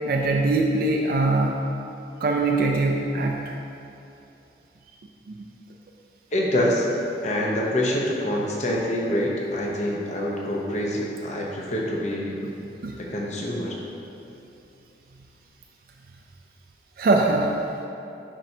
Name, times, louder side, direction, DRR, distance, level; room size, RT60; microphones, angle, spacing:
voice 1, 0.0-1.6 2.2-3.4 5.4-5.5 12.4-12.5 12.8-13.0 17.0-17.6, right 2 dB, 55° right, 1 dB, 0.4 m, -22 dB
voice 2, 6.3-6.9 7.2-12.3 13.0-13.7, left 1 dB, 40° left, -2 dB, 0.8 m, -26 dB
10.0 x 4.3 x 2.7 m, 2.9 s
head